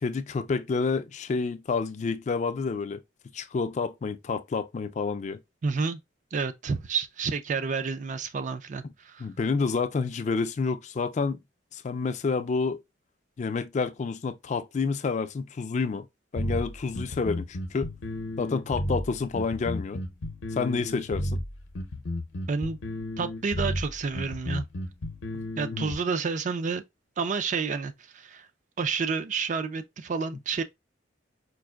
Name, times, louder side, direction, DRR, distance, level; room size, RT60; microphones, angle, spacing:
voice 1, 0.0-3.0 3.3-5.4 9.2-11.4 11.7-12.8 13.4-16.1 16.3-17.9 18.4-20.0 20.5-21.4 25.7-26.0, left 4 dB, 40° left, 0.3 m, -29 dB
voice 2, 5.6-6.0 6.3-9.3 22.5-22.8 23.2-24.7 25.6-26.8 27.2-28.5 28.8-30.6, right 5 dB, 40° right, 0.4 m, -30 dB
sound 1, 16.4-26.0, left 1 dB, 80° left, 0.6 m, -33 dB
4.6 x 2.5 x 2.2 m
head